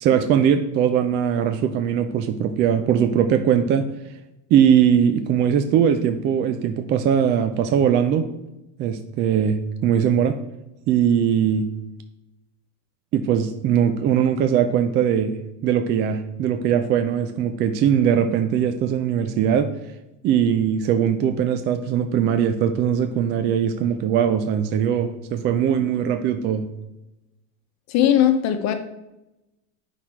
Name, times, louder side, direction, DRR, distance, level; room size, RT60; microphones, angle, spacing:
voice 1, 0.0-3.9 4.5-8.3 8.8-10.4 10.9-11.7 13.1-15.4 15.6-19.7 20.2-26.7, right 8 dB, 30° right, 8 dB, 0.3 m, -20 dB
voice 2, 27.9-28.7, left 10 dB, 40° left, 7 dB, 1.1 m, -18 dB
8.1 x 5.9 x 4.4 m, 0.95 s
supercardioid pair, 145°, 41 cm